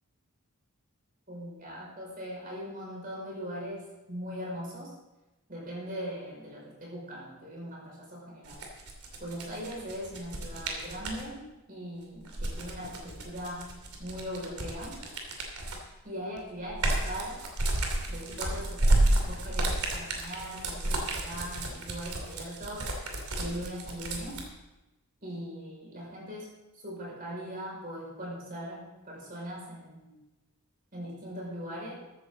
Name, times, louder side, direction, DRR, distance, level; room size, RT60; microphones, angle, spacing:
voice 1, 1.3-4.9 5.5-8.6 9.2-11.4 11.7-13.7 14.0-15.0 16.0-17.4 18.1-19.0 19.2-22.9 23.4-24.4 25.2-30.2 30.9-31.9, equal, 40° right, -3 dB, 5.3 m, -40 dB
sound 1, 8.4-11.2 12.2-15.9 16.4-24.4, right 1 dB, 85° right, 2.8 m, -31 dB
14.5 x 13.5 x 3.9 m, 1.0 s
head